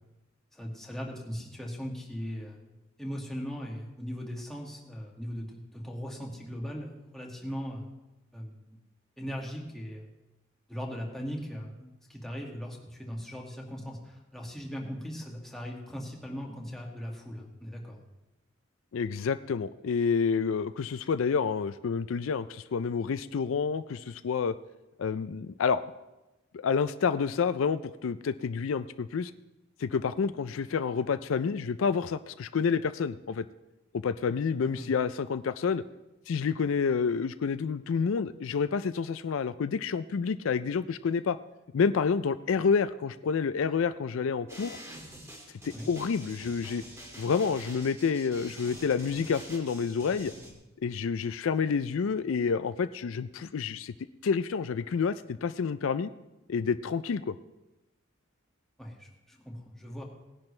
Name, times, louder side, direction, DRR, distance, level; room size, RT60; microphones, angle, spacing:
voice 1, 0.5-2.7 3.0-7.9 8.3-8.8 9.2-10.1 10.7-18.0 34.6-34.9 45.7-45.9 58.8-60.0, equal, ahead, -2 dB, 1.9 m, -39 dB
voice 2, 18.9-24.5 25.0-25.8 26.5-29.3 29.8-33.4 34.0-35.8 36.3-41.4 41.7-44.8 45.6-46.8 47.2-50.3 50.8-53.9 54.2-56.1 56.5-57.3, left 5 dB, 70° left, 13 dB, 0.4 m, -29 dB
sound 1, 44.5-50.5, equal, 15° right, 2.4 m, -46 dB
18.5 x 10.5 x 3.3 m, 1.0 s
head